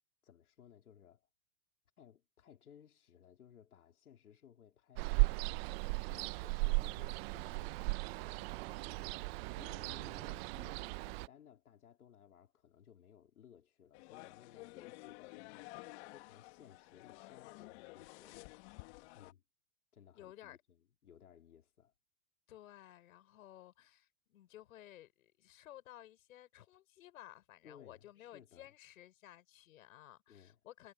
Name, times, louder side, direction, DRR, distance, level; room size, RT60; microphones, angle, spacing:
voice 1, 0.2-1.3 2.0-18.5 19.1-19.4 19.9-21.9 27.6-28.7 30.3-30.6, left 9 dB, 85° left, 3.9 m, -61 dB
Ocean, 5.0-11.3, right 27 dB, 45° right, 0.9 m, -36 dB
sound 1, 13.9-19.3, left 24 dB, 50° left, 1.9 m, -52 dB
voice 2, 20.1-20.6 22.5-30.9, left 13 dB, 70° left, 5.7 m, -56 dB
hypercardioid pair, 125°, 43 cm